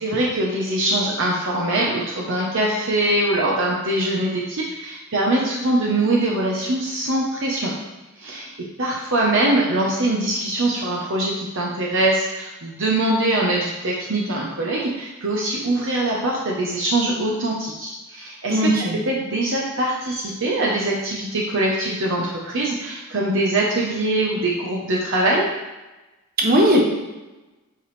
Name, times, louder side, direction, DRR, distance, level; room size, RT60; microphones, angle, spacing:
voice 1, 0.0-7.7 8.2-8.5 8.8-18.7 19.1-25.4, right 1 dB, 60° right, -3 dB, 0.9 m, -22 dB
voice 2, 18.5-19.0 26.4-26.8, equal, 45° right, 0 dB, 1.1 m, -17 dB
7.7 x 5.1 x 3.2 m, 1.1 s
head